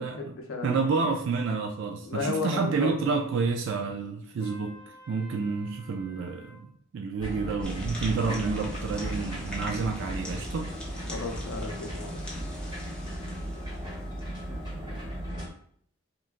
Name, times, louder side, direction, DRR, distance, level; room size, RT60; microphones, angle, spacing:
voice 1, 0.0-0.9 2.0-2.9 11.1-12.2, left 3 dB, 70° left, 2 dB, 0.6 m, -33 dB
voice 2, 0.6-10.7, right 4 dB, 60° right, 2 dB, 0.3 m, -29 dB
Trumpet, 4.4-6.6, left 1 dB, 25° left, 0.8 m, -51 dB
sound 1, 7.2-15.5, equal, 20° right, 1.1 m, -36 dB
sound 2, 7.6-14.4, left 1 dB, 5° left, 0.5 m, -44 dB
3.0 x 2.3 x 2.4 m, 0.63 s
head